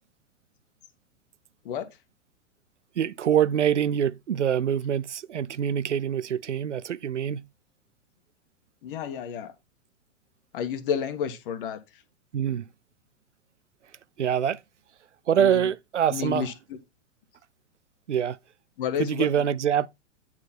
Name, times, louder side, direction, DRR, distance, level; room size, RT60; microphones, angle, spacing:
voice 1, 3.0-7.5 12.3-12.6 14.2-14.6 15.3-16.5 18.1-18.4 19.0-19.9, right 9 dB, 75° right, 0.6 m, -25 dB
voice 2, 8.8-9.5 10.5-11.8 15.4-15.7 16.1-16.5 18.8-19.3, left 8 dB, 45° left, 1.5 m, -30 dB
9.5 x 4.6 x 4.3 m
figure-of-eight pair, 100°, 36 cm